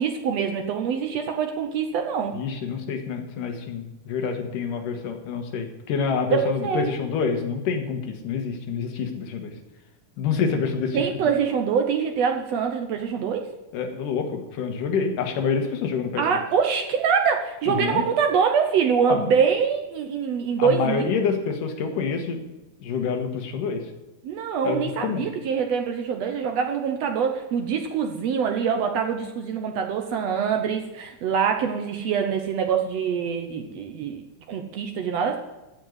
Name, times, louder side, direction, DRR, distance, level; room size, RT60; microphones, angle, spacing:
voice 1, 0.0-2.3 6.3-6.9 10.9-13.4 16.2-21.1 24.2-35.4, right 7 dB, 70° right, 4 dB, 1.7 m, -24 dB
voice 2, 2.3-9.5 10.2-11.0 13.7-16.4 17.7-18.0 19.1-19.3 20.6-22.4 22.8-23.8 24.6-25.3, left 6 dB, 80° left, 4 dB, 3.0 m, -27 dB
14.5 x 5.3 x 9.4 m, 1.0 s
omnidirectional pair, 3.7 m